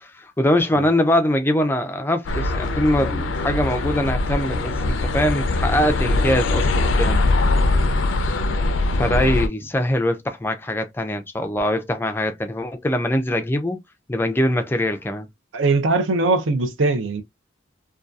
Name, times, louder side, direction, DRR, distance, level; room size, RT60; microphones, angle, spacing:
voice 1, 0.0-7.2 8.3-8.4 8.9-13.8 14.1-15.3, left 1 dB, 10° left, 0.3 m, -22 dB
sound 1, 2.3-9.5, left 2 dB, 75° left, 0.4 m, -21 dB
voice 2, 15.5-17.2, right 3 dB, 75° right, 0.6 m, -20 dB
2.6 x 2.3 x 2.2 m
head